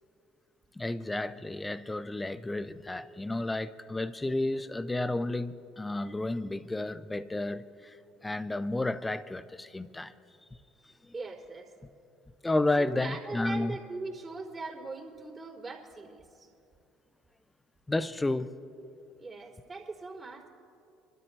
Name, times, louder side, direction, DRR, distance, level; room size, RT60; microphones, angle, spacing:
voice 1, 0.8-8.0 8.2-10.1 12.4-13.8 17.9-18.5, left 2 dB, 15° left, 0.7 m, -31 dB
voice 2, 11.1-11.7 12.8-16.5 19.2-20.5, right 3 dB, 25° right, 3.7 m, -40 dB
26.5 x 12.5 x 3.4 m
hypercardioid pair, 70°, 0 cm